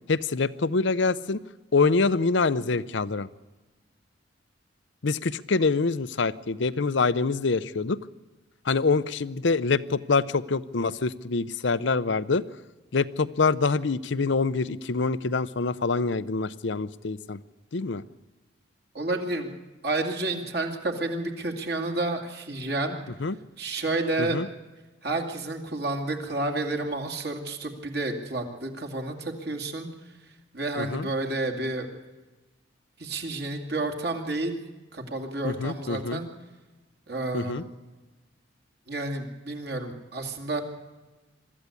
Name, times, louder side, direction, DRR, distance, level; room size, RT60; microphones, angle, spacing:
voice 1, 0.1-1.4 1.7-3.3 5.0-8.0 8.7-12.4 12.9-17.4 17.7-18.0 23.2-23.3 24.2-24.5 30.8-31.1 35.4-36.2 37.3-37.6, left 4 dB, 70° left, 16 dB, 0.7 m, -25 dB
voice 2, 18.9-19.5 19.8-23.0 23.6-24.4 25.0-29.9 30.5-31.9 33.0-34.5 34.9-36.3 37.1-37.6 38.9-40.6, right 2 dB, 55° right, 3 dB, 2.4 m, -30 dB
23.0 x 13.5 x 8.4 m, 1.2 s
head